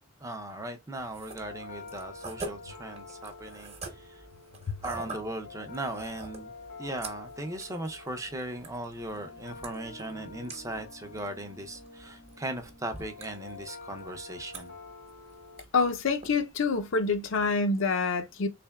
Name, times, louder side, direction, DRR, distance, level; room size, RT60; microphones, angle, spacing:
voice 1, 0.2-4.2 4.8-6.5 6.8-14.7, right 1 dB, 15° right, 0.5 m, -38 dB
sound 1, 0.9-17.5, right 3 dB, 30° right, 0.9 m, -47 dB
sound 2, 1.4-15.6, left 3 dB, 80° left, 1.3 m, -48 dB
voice 2, 15.7-18.5, left 4 dB, 65° left, 0.6 m, -26 dB
3.6 x 3.3 x 2.3 m
head